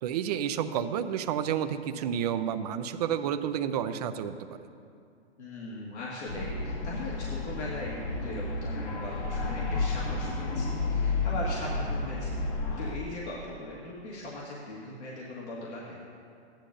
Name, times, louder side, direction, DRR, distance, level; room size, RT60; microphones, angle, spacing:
voice 1, 0.0-4.6, right 9 dB, 35° right, 9 dB, 0.4 m, -30 dB
voice 2, 5.4-12.4 12.8-15.9, left 2 dB, 75° left, -5 dB, 2.0 m, -39 dB
sound 1, 6.3-13.0, left 3 dB, 30° left, 0.9 m, -31 dB
14.5 x 10.0 x 2.6 m, 2.5 s
hypercardioid pair, 135°, 34 cm